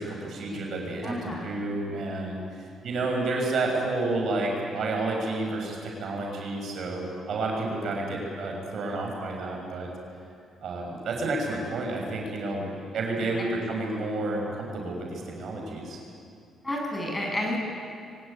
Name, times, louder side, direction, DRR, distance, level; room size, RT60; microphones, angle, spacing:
voice 1, 0.0-9.9 10.6-16.0, right 2 dB, 65° right, 0 dB, 6.4 m, -30 dB
voice 2, 1.0-1.5 11.5-11.6 13.2-13.3 16.6-17.6, left 1 dB, 15° left, -1 dB, 7.9 m, -31 dB
24.5 x 18.5 x 9.9 m, 2.4 s
cardioid pair, 90°, 0 cm